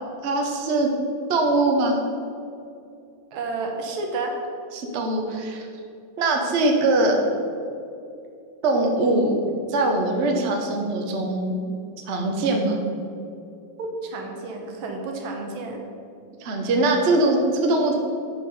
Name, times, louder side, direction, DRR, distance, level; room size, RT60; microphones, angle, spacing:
voice 1, 0.2-0.9 1.3-2.0 4.7-5.7 6.2-7.2 8.6-9.3 9.7-11.6 12.1-12.8 16.4-18.0, right 2 dB, 50° right, 2 dB, 0.8 m, -22 dB
voice 2, 3.3-4.4 13.8-15.8, right 3 dB, 80° right, 2 dB, 1.7 m, -31 dB
7.5 x 4.7 x 5.3 m, 2.6 s
omnidirectional pair, 2.2 m